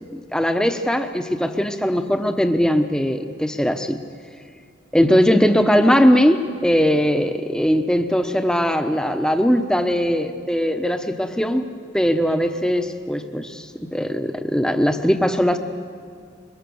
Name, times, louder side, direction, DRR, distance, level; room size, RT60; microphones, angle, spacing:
voice 1, 0.1-4.0 4.9-11.6 11.9-15.6, equal, 5° left, 7 dB, 0.9 m, -20 dB
23.5 x 22.0 x 7.1 m, 2.2 s
head